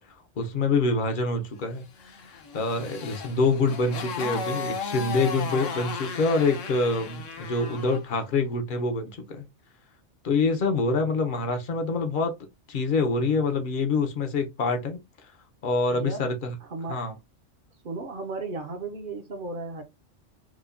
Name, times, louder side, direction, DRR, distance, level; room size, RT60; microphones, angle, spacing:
voice 1, 0.4-9.4 10.2-12.3 12.7-15.0 15.6-16.5 16.9-17.2, left 3 dB, 50° left, 0.8 m, -26 dB
Motorcycle, 2.0-8.1, left 5 dB, 75° left, 1.1 m, -35 dB
voice 2, 15.9-16.3 16.6-17.0 17.8-19.8, right 3 dB, 50° right, 0.8 m, -35 dB
4.8 x 2.2 x 2.5 m
omnidirectional pair, 1.3 m